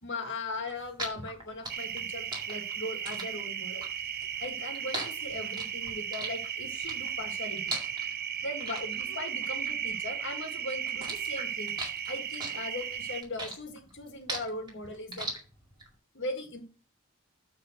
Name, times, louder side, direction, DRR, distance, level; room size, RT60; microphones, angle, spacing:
voice 1, 0.0-3.9 4.4-7.8 8.4-11.7 12.1-15.3 16.1-16.6, left 2 dB, 55° left, 4 dB, 1.8 m, -39 dB
sound 1, 0.6-10.4 10.7-15.9, right 2 dB, 20° right, 2.2 m, -39 dB
sound 2, 1.7-13.2, right 8 dB, 45° right, 0.6 m, -36 dB
9.3 x 3.9 x 6.4 m, 0.37 s
head